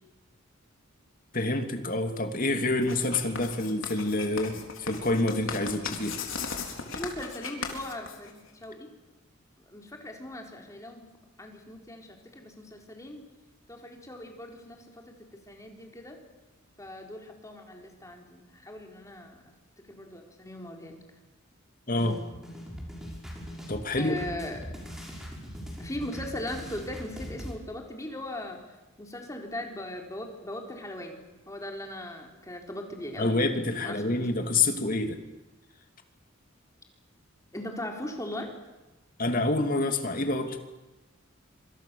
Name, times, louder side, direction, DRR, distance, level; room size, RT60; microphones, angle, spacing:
voice 1, 1.3-6.2 21.9-22.2 23.7-24.2 33.2-35.2 39.2-40.6, left 2 dB, 45° left, 6 dB, 2.7 m, -27 dB
Writing, 2.8-8.6, left 5 dB, 75° left, 4.1 m, -37 dB
voice 2, 6.9-8.9 9.7-11.0 11.4-13.2 13.7-16.2 16.8-19.5 19.9-21.0 24.0-24.6 25.8-28.6 29.0-33.5 33.8-34.1 37.5-38.5, left 1 dB, 15° left, 2 dB, 4.1 m, -39 dB
sound 1, 22.0-27.5, equal, 5° right, 6.1 m, -41 dB
26.0 x 25.5 x 7.1 m, 1.1 s
head